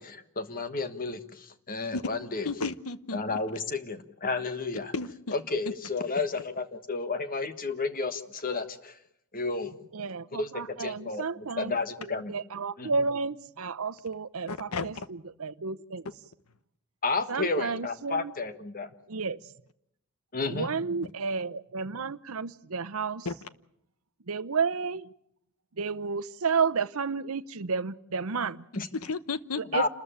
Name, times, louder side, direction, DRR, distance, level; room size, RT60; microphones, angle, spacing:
voice 1, 0.0-2.5 3.1-4.9 5.3-9.0 9.3-9.7 10.3-12.4 12.8-12.9 17.0-18.9 20.3-20.7 28.7-28.9 29.7-29.9, left 3 dB, 40° left, 10 dB, 1.4 m, -32 dB
voice 2, 2.4-3.4 4.9-5.1 14.5-15.1 23.2-23.3 28.9-29.8, left 3 dB, 75° left, 14 dB, 1.0 m, -33 dB
voice 3, 9.9-11.8 12.3-14.9 15.4-16.0 17.3-18.3 19.1-19.4 20.5-23.3 24.3-25.1 25.8-28.6 29.6-29.9, right 5 dB, 70° right, 13 dB, 0.8 m, -31 dB
28.5 x 14.0 x 8.9 m, 0.76 s
head